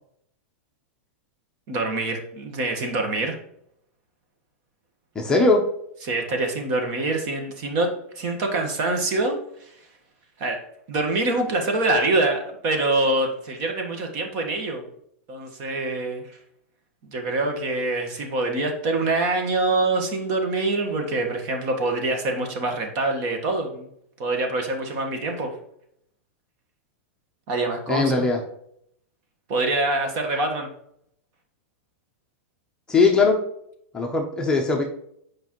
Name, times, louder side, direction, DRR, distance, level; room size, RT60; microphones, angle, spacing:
voice 1, 1.7-3.4 6.0-9.7 10.4-10.6 10.9-14.9 15.3-16.2 17.1-23.9 24.2-25.5 27.5-28.3 29.5-30.7, right 2 dB, 40° right, 4 dB, 1.4 m, -25 dB
voice 2, 5.1-5.6 27.9-28.4 32.9-33.4 33.9-34.8, left 3 dB, 10° left, 0 dB, 0.7 m, -19 dB
8.1 x 5.2 x 3.1 m, 0.72 s
supercardioid pair, 160°, 8 cm